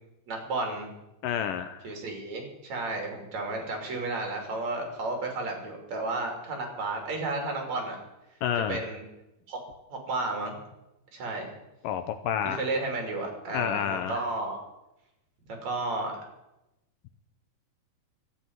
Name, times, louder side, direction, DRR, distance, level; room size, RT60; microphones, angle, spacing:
voice 1, 0.3-0.9 1.8-8.0 8.7-9.0 9.5-9.6 9.9-10.6 11.1-11.5 12.4-14.6 15.5-16.1, right 2 dB, 50° right, 2 dB, 3.8 m, -32 dB
voice 2, 1.2-1.9 8.4-8.9 11.8-12.6 13.5-14.2, left 9 dB, 80° left, 9 dB, 2.2 m, -29 dB
13.0 x 8.3 x 9.3 m, 0.95 s
omnidirectional pair, 4.2 m